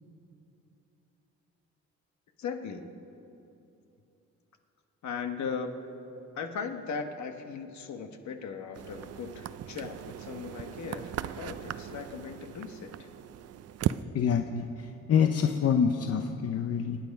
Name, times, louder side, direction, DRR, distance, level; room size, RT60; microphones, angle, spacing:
voice 1, 2.4-2.9 5.0-5.7 6.3-13.1, left 5 dB, 70° left, 6 dB, 1.4 m, -38 dB
sound 1, 8.7-14.0, right 11 dB, 55° right, 0.6 m, -37 dB
voice 2, 14.1-14.7 15.1-17.0, left 7 dB, 50° left, 6 dB, 0.8 m, -26 dB
26.0 x 9.4 x 5.4 m, 2.9 s
cardioid pair, 90°, 30 cm